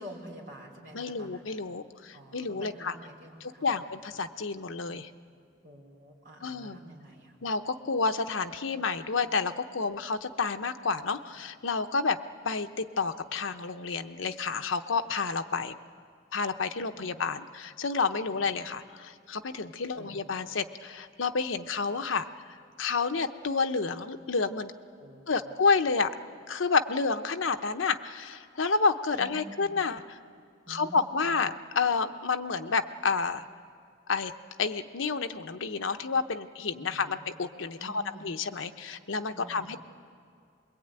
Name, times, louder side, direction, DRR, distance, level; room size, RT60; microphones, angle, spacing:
voice 1, 0.0-1.6 2.1-4.2 5.6-7.4 16.9-17.3 18.3-18.5 20.0-20.2 25.0-25.5 29.2-29.8 30.6-31.4 36.8-37.3 37.8-38.3 39.3-39.8, right 1 dB, 45° right, -3 dB, 4.3 m, -48 dB
voice 2, 0.9-2.9 3.4-5.1 6.4-6.8 7.4-12.2 12.4-15.7 16.3-22.3 22.8-24.7 25.3-26.1 26.5-30.0 30.7-33.4 34.1-34.3 34.6-39.8, left 4 dB, 85° left, 8 dB, 0.9 m, -30 dB
24.0 x 21.5 x 9.0 m, 2.3 s
head